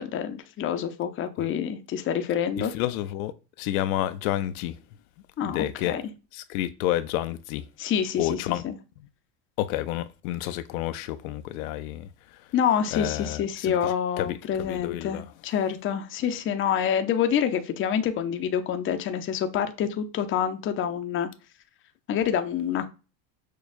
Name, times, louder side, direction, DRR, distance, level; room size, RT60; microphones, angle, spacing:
voice 1, 0.0-2.7 5.4-6.0 7.8-8.4 8.6-8.8 12.5-21.3 22.1-22.9, left 8 dB, 30° left, 0.6 m, -27 dB
voice 2, 2.6-3.3 3.6-4.8 5.5-6.0 6.3-7.6 8.2-8.6 9.6-12.1 12.9-15.2, left 13 dB, 80° left, 0.5 m, -30 dB
6.4 x 2.2 x 2.4 m
supercardioid pair, 120°, 42 cm